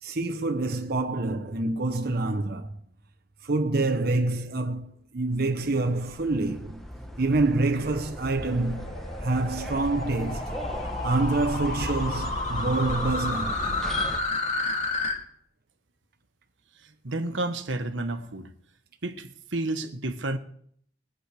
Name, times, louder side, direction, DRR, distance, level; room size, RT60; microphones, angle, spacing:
voice 1, 0.0-2.8 3.4-6.8 7.2-10.6 11.0-13.8, right 2 dB, 55° right, 0.9 m, -27 dB
sound 1, 5.4-14.2, equal, ahead, 1.2 m, -36 dB
sound 2, 7.1-15.1, left 2 dB, 40° left, 2.9 m, -32 dB
voice 2, 17.0-18.5 19.0-20.4, right 2 dB, 85° right, 1.4 m, -31 dB
22.0 x 8.2 x 4.9 m
head